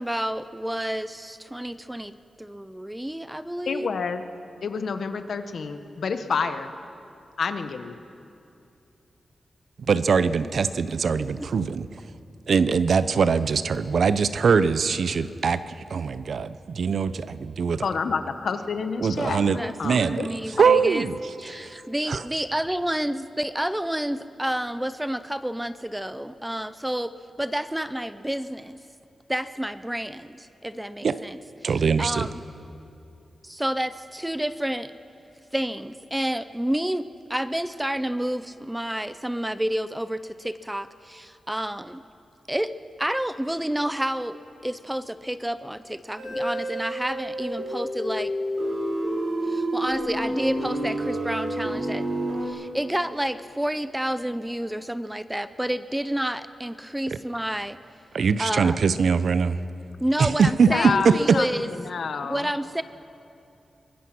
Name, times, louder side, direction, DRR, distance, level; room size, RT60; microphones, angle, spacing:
voice 1, 0.0-2.1 2.4-3.9 11.4-11.5 12.6-12.7 19.5-21.1 21.4-27.1 27.4-28.8 29.3-32.4 33.4-34.9 35.5-42.0 42.5-42.7 43.0-44.4 44.6-48.3 49.4-52.1 52.4-57.8 58.4-58.8 60.0-61.7 62.3-62.8, right 1 dB, 5° right, 13 dB, 0.5 m, -29 dB
voice 2, 3.7-4.2 4.6-6.7 7.4-8.0 17.8-20.3 20.6-20.7 60.7-62.5, left 5 dB, 60° left, 9 dB, 1.1 m, -29 dB
voice 3, 9.9-11.9 12.5-17.9 19.0-19.6 19.8-21.1 21.6-21.7 22.1-22.2 31.0-31.2 31.6-32.3 58.1-59.6 60.2-60.7 61.0-61.4, right 5 dB, 60° right, 14 dB, 0.6 m, -22 dB
sound 1, 46.2-52.5, right 1 dB, 80° right, 5.3 m, -29 dB
23.5 x 20.5 x 6.1 m, 2.6 s
wide cardioid pair, 165°, 0 cm